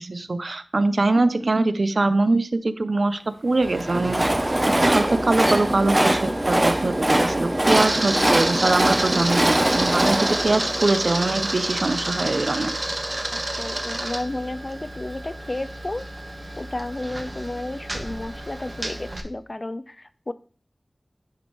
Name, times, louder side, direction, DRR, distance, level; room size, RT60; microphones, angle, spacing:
voice 1, 0.0-4.4 4.8-12.7, right 2 dB, 65° right, 11 dB, 0.5 m, -23 dB
Train, 3.6-11.7, right 1 dB, 25° right, 0.6 m, -23 dB
Camera, 3.6-19.2, right 1 dB, 50° right, 1.1 m, -30 dB
voice 2, 13.3-16.0 16.6-20.3, left 1 dB, 40° left, 12 dB, 0.5 m, -32 dB
10.5 x 5.3 x 3.0 m, 0.41 s
wide cardioid pair, 55°, 0 cm